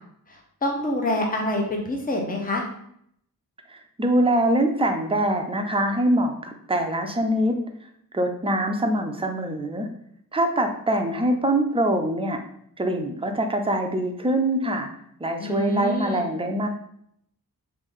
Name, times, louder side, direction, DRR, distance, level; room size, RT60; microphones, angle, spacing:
voice 1, 0.6-2.6 15.4-16.3, left 1 dB, 20° left, 1 dB, 0.7 m, -26 dB
voice 2, 3.7-7.6 8.1-9.9 10.3-12.4 12.8-14.9 15.2-16.7, right 1 dB, 15° right, 4 dB, 0.4 m, -24 dB
3.2 x 2.6 x 3.6 m, 0.70 s
wide cardioid pair, 115°, 38 cm